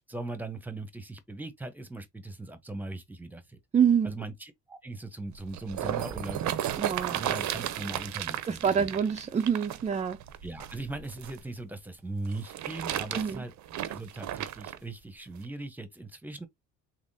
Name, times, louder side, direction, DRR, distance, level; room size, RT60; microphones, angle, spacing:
voice 1, 0.0-3.6 4.0-6.8 7.1-8.9 10.4-13.5 13.9-16.5, right 2 dB, 5° right, 0.9 m, -39 dB
voice 2, 3.7-4.1 6.8-7.2 8.5-10.2 13.2-13.4, right 7 dB, 25° right, 0.4 m, -26 dB
sound 1, 5.3-11.4 12.3-14.8 15.4-15.5, right 11 dB, 70° right, 0.6 m, -34 dB
3.6 x 2.9 x 2.7 m
cardioid pair, 90°, 30 cm